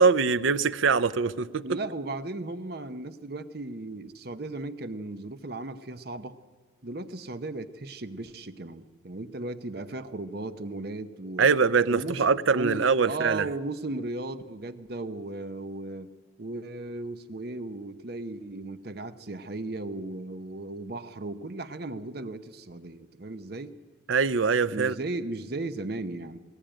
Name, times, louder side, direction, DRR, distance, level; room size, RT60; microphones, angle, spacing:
voice 1, 0.0-1.6 11.4-13.5 24.1-24.9, right 5 dB, 80° right, 0.6 m, -23 dB
voice 2, 1.6-6.4 6.8-11.5 11.9-12.2 12.5-16.1 16.4-23.7 24.7-26.4, right 2 dB, 50° right, 0.8 m, -36 dB
19.5 x 17.5 x 9.0 m
head